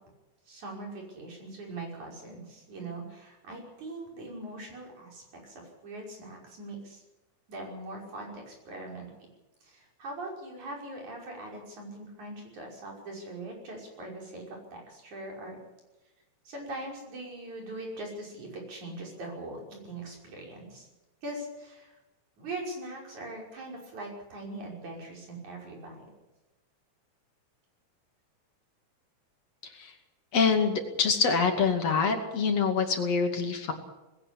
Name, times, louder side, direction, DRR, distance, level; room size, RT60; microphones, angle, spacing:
voice 1, 0.5-7.0 7.5-9.1 9.6-14.4 14.7-15.6 16.5-20.9 21.2-22.0 22.4-26.1, right 2 dB, 70° right, -1 dB, 7.1 m, -41 dB
voice 2, 30.3-33.7, left 5 dB, 60° left, 4 dB, 3.3 m, -25 dB
20.0 x 17.0 x 8.5 m, 1.1 s
omnidirectional pair, 3.5 m